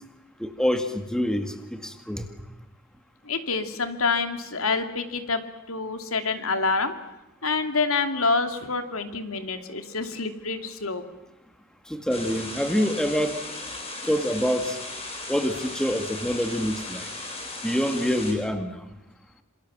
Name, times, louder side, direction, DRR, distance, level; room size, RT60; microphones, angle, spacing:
voice 1, 0.4-2.3 11.9-13.4 14.0-14.8 15.3-17.1 17.6-18.9, equal, 5° left, 7 dB, 2.0 m, -26 dB
voice 2, 3.2-5.4 5.7-6.9 7.4-11.0, left 4 dB, 80° left, 7 dB, 2.7 m, -27 dB
sound 1, 12.1-18.3, left 2 dB, 30° left, 6.5 m, -36 dB
28.0 x 27.0 x 7.5 m, 0.92 s
head